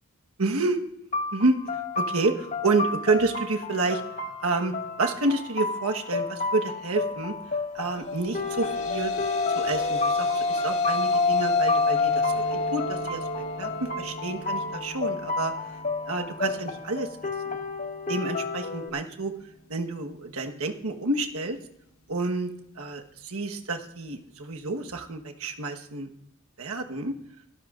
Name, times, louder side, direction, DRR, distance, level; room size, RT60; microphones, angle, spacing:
voice 1, 0.4-0.8 1.3-1.6 1.9-4.0 4.4-7.3 7.7-9.1 9.5-15.5 16.1-17.1 17.4-17.6 18.1-19.3 19.7-21.6 22.1-26.1 26.6-27.2, right 3 dB, 85° right, 4 dB, 1.3 m, -29 dB
sound 1, 1.1-18.9, left 3 dB, 35° left, 1.1 m, -32 dB
sound 2, 8.2-16.7, left 3 dB, 85° left, 1.5 m, -28 dB
23.5 x 13.0 x 2.5 m, 0.77 s
head